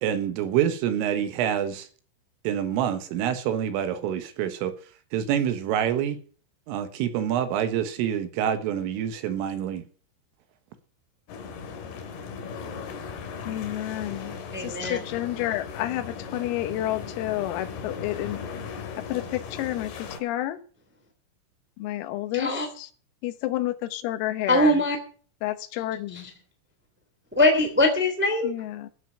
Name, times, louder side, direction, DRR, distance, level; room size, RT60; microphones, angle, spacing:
voice 1, 0.0-1.9 2.5-4.7 5.1-6.2 6.7-9.8, right 9 dB, 80° right, 3.9 m, -26 dB
sound 1, 11.3-20.2, left 6 dB, 60° left, 3.5 m, -38 dB
voice 2, 13.5-18.4 18.7-20.6 21.8-22.9 23.2-24.8 25.4-26.3 28.4-28.9, left 14 dB, 85° left, 3.9 m, -30 dB
voice 3, 14.5-15.0 22.3-22.7 24.5-25.0 26.1-26.2 27.3-28.5, left 1 dB, 15° right, 0.3 m, -22 dB
14.0 x 7.9 x 9.0 m
omnidirectional pair, 6.0 m